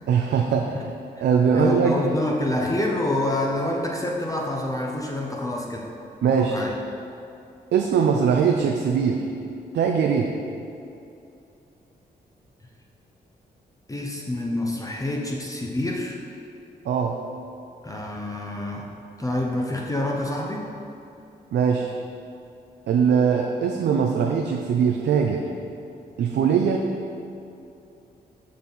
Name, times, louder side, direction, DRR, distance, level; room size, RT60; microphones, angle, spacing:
voice 1, 0.1-0.9 1.2-2.0 6.2-6.6 7.7-9.3 9.7-10.3 16.8-17.2 21.5-21.9 22.9-25.4 26.2-26.8, right 6 dB, 75° right, 2 dB, 0.5 m, -21 dB
voice 2, 1.5-5.9 6.2-6.7 13.9-16.2 17.8-18.9 19.2-20.7, left 1 dB, 20° left, -1 dB, 0.7 m, -27 dB
6.6 x 5.4 x 4.0 m, 2.7 s
cardioid pair, 70°, 18 cm